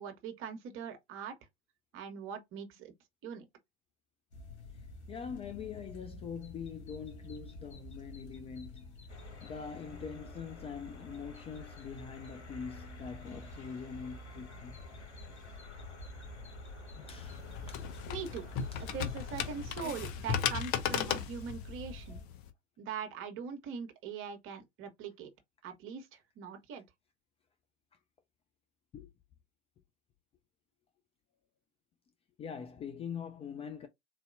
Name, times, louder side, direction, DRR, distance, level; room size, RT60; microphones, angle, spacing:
voice 1, 0.0-1.4 1.9-2.9 3.2-3.5 18.1-18.5 18.8-22.2 22.8-25.3 25.6-26.8, right 7 dB, 40° right, 1.2 m, -42 dB
sound 1, 4.3-22.2, left 2 dB, 70° left, 2.0 m, -48 dB
voice 2, 5.1-9.0 9.4-14.8 17.0-17.9 18.7-18.9 28.9-29.1 32.4-33.9, left 6 dB, 20° left, 0.4 m, -43 dB
sound 2, 9.1-19.7, left 4 dB, 90° left, 1.2 m, -54 dB
sound 3, 17.1-22.5, left 8 dB, 40° left, 0.8 m, -36 dB
4.1 x 2.7 x 2.5 m
figure-of-eight pair, 90°, 34 cm